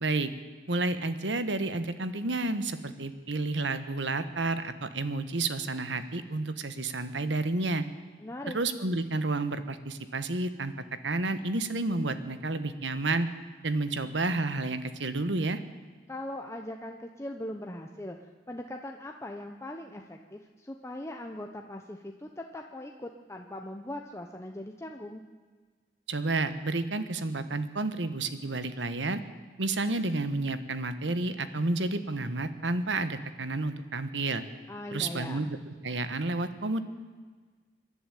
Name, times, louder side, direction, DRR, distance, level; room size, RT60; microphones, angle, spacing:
voice 1, 0.7-7.8 8.5-10.7 11.0-13.3 13.6-15.6 26.1-29.2 29.6-34.4 34.9-35.5 35.8-36.8, right 2 dB, 85° right, 11 dB, 1.3 m, -30 dB
voice 2, 8.2-8.6 16.1-25.2 34.7-35.5, left 1 dB, 15° left, 3 dB, 0.9 m, -40 dB
26.0 x 11.0 x 9.3 m, 1.5 s
head